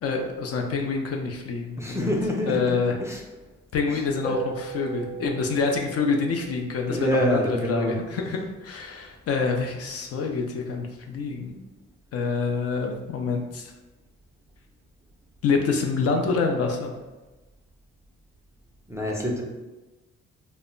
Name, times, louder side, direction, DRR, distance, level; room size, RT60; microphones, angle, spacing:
voice 1, 0.0-2.1 2.5-2.9 3.7-11.6 12.1-13.7 15.4-16.9, left 4 dB, 55° left, 2 dB, 0.5 m, -26 dB
voice 2, 1.8-3.2 3.9-4.0 6.9-8.0 18.9-19.4, equal, 10° right, -1 dB, 0.4 m, -27 dB
sound 1, 4.2-8.9, right 5 dB, 30° left, 0.9 m, -39 dB
2.1 x 2.0 x 3.7 m, 1.1 s
cardioid pair, 90°, 30 cm